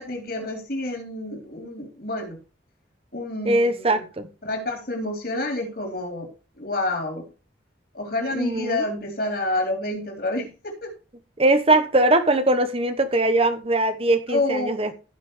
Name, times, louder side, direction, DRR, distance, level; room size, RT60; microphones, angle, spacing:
voice 1, 0.0-2.4 3.1-4.0 4.4-6.3 6.6-7.3 7.9-10.9 14.3-14.8, left 2 dB, 55° left, 3 dB, 3.4 m, -28 dB
voice 2, 3.4-4.3 8.3-8.8 11.4-14.9, right 2 dB, 30° right, 9 dB, 1.0 m, -21 dB
15.5 x 6.0 x 3.2 m, 0.33 s
head